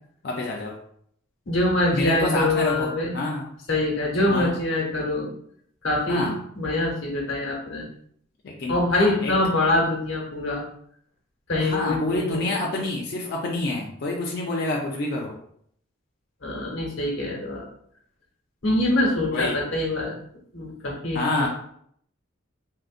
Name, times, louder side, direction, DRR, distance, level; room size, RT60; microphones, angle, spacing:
voice 1, 0.2-0.8 1.9-3.5 4.3-4.6 6.1-6.4 8.4-9.3 11.6-15.4 19.3-19.6 21.1-21.5, left 2 dB, 55° left, -2 dB, 0.4 m, -27 dB
voice 2, 1.5-3.1 3.7-5.3 5.8-7.8 8.7-10.6 11.5-12.5 16.4-17.7 18.6-20.2 20.5-21.3, left 2 dB, 90° left, -1 dB, 0.9 m, -24 dB
3.7 x 2.1 x 2.4 m, 0.66 s
head